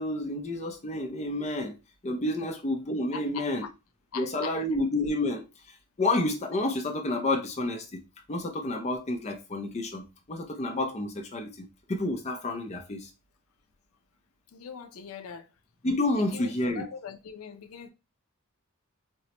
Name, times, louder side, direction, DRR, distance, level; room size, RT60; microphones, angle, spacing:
voice 1, 0.0-1.8 2.0-3.7 4.1-5.4 6.0-7.9 8.3-10.0 10.3-13.1 15.8-16.8, left 2 dB, 30° left, 0.5 m, -29 dB
voice 2, 3.1-3.7 4.1-4.6 14.5-15.5 16.2-17.9, left 6 dB, 85° left, 0.5 m, -41 dB
4.4 x 2.1 x 2.8 m
head